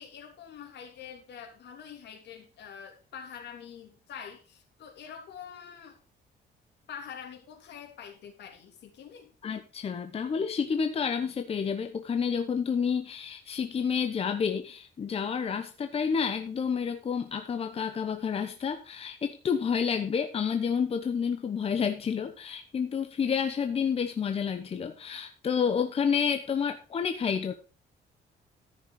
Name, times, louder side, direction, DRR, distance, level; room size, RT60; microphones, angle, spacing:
voice 1, 0.0-6.0 6.9-9.3, left 7 dB, 70° left, 4 dB, 3.1 m, -45 dB
voice 2, 9.4-27.5, left 6 dB, 35° left, 7 dB, 0.9 m, -29 dB
14.0 x 6.4 x 4.7 m, 0.34 s
cardioid pair, 145°, 18 cm